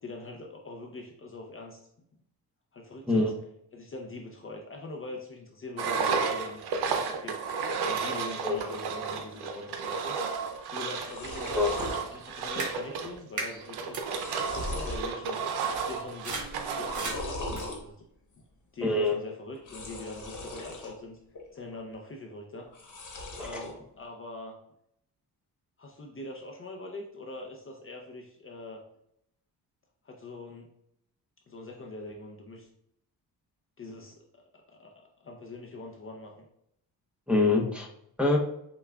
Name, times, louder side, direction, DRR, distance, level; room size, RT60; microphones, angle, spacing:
voice 1, 0.0-1.8 2.7-3.3 3.7-7.4 7.8-10.2 10.7-11.7 12.1-15.4 15.9-16.5 16.7-18.0 18.7-21.2 21.5-22.7 23.4-24.6 25.8-28.8 30.0-30.7 31.5-32.7 33.8-34.3 34.7-36.5, left 2 dB, 35° left, 1 dB, 0.5 m, -43 dB
Engine, 5.8-17.2, right 5 dB, 85° right, 0.6 m, -32 dB
sound 1, 10.5-10.6 10.8-12.0 12.4-12.9 13.1-13.2 13.8-15.1 15.5-16.0 16.7-17.8 19.5-20.9 21.3-21.9 22.7-23.7, left 2 dB, 50° left, 1.1 m, -39 dB
sound 2, 12.6-12.7 13.4-13.5 13.9-14.0 15.1-15.2 15.6-17.9, right 3 dB, 50° right, 1.4 m, -37 dB
voice 2, 18.8-19.1 23.5-23.6 37.3-37.9 38.2-38.4, left 2 dB, 5° right, -2 dB, 0.7 m, -24 dB
5.6 x 2.3 x 2.2 m, 0.75 s
cardioid pair, 95°, 38 cm